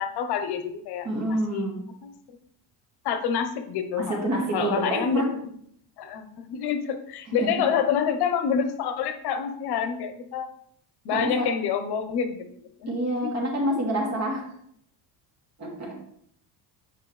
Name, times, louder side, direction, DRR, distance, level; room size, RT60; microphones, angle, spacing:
voice 1, 0.0-1.7 2.0-2.4 3.0-4.3 4.5-5.5 6.0-10.5 11.0-12.9 13.2-13.3, left 7 dB, 60° left, 7 dB, 1.0 m, -28 dB
voice 2, 1.0-1.8 4.0-5.3 7.4-7.6 11.1-11.5 12.9-14.5 15.6-16.0, right 1 dB, 40° right, -1 dB, 2.5 m, -27 dB
9.1 x 5.4 x 3.3 m, 0.69 s
cardioid pair, 130°, 43 cm